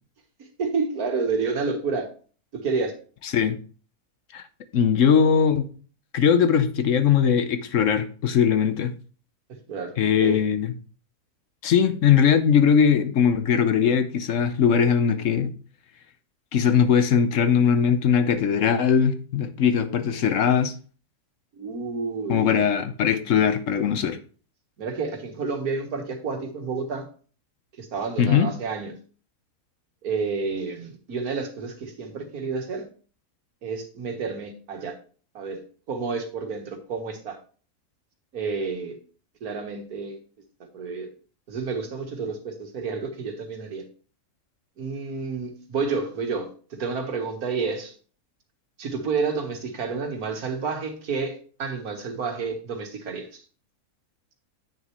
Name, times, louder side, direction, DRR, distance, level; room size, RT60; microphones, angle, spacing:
voice 1, 0.4-2.1 2.5-2.9 9.7-9.9 10.2-10.4 21.6-22.7 24.8-27.1 27.8-28.9 30.0-32.9 33.6-34.9 35.4-35.6 35.9-37.4 38.3-39.0 39.4-40.2 40.7-41.1 41.5-43.9 44.8-47.9 48.8-53.4, right 4 dB, 70° right, 1.8 m, -30 dB
voice 2, 4.7-5.7 6.1-8.9 10.0-10.7 11.6-15.5 16.5-20.7 22.3-24.2 28.2-28.5, left 7 dB, 60° left, 1.0 m, -20 dB
8.8 x 6.6 x 3.0 m
omnidirectional pair, 1.7 m